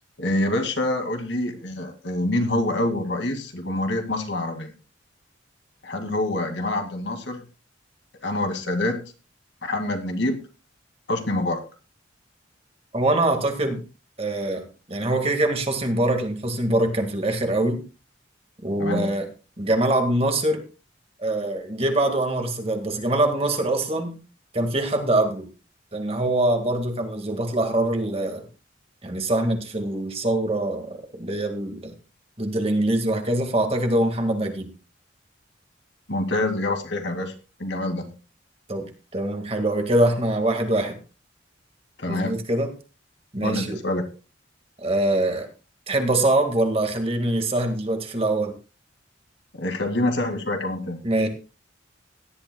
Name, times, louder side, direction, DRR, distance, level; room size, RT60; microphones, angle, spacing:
voice 1, 0.2-4.7 5.8-7.4 8.2-9.1 9.6-10.4 11.1-11.6 18.8-19.1 36.1-37.3 37.6-38.1 42.0-42.4 43.4-44.0 49.5-51.0, left 1 dB, 65° left, 4 dB, 2.2 m, -26 dB
voice 2, 12.9-13.8 14.2-17.8 18.6-19.3 19.6-20.6 21.2-24.2 24.5-25.5 25.9-28.5 29.0-31.9 32.4-34.7 38.7-41.0 42.1-42.7 43.3-43.8 44.8-45.5 45.9-48.5 51.0-51.3, right 1 dB, 30° right, 5 dB, 1.9 m, -24 dB
17.5 x 11.5 x 2.3 m, 0.33 s
head